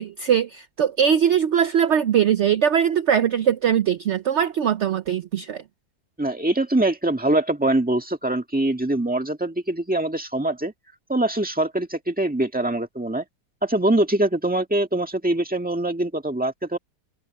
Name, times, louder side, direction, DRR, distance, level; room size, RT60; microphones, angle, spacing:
voice 1, 0.0-5.6, right 8 dB, 60° right, 0.7 m, -21 dB
voice 2, 6.2-10.7 11.1-13.2 13.6-16.8, right 1 dB, 5° right, 1.7 m, -23 dB
omnidirectional pair, 1.9 m